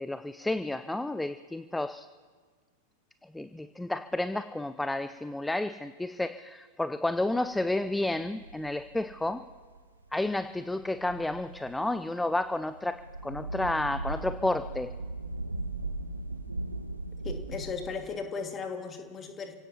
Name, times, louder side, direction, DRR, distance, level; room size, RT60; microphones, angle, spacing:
voice 1, 0.0-2.1 3.2-9.5 10.1-14.9, left 2 dB, 5° left, 12 dB, 0.4 m, -31 dB
sound 1, 7.1-18.0, right 2 dB, 80° right, 0.6 m, -39 dB
voice 2, 17.2-19.6, left 5 dB, 25° left, 5 dB, 1.9 m, -36 dB
30.0 x 17.0 x 2.8 m, 1.5 s
figure-of-eight pair, 90°, 0 cm